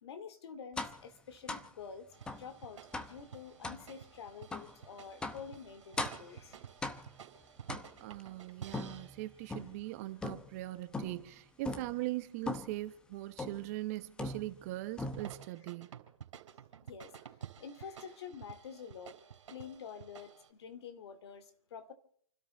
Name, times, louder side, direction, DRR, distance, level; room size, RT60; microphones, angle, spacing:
voice 1, 0.0-2.1 2.4-6.6 16.9-17.3 17.6-19.2 19.5-21.9, left 7 dB, 50° left, 2.5 m, -48 dB
sound 1, 0.8-1.1 1.5-1.7 2.3-2.5 2.9-3.2 3.6-3.9 4.5-4.7 5.2-5.5 6.0-6.3 6.8-7.2 7.7-8.2 8.7-9.8 10.2-10.6 10.9-11.3 11.6-12.0 12.5-12.8 13.4-13.7 14.2-14.7 15.0-15.5, left 2 dB, 5° left, 0.8 m, -40 dB
sound 2, 2.1-9.8 15.1-20.5, right 8 dB, 60° right, 4.1 m, -52 dB
voice 2, 8.0-15.9, right 18 dB, 25° right, 0.9 m, -40 dB
29.5 x 12.5 x 3.9 m
hypercardioid pair, 145°, 18 cm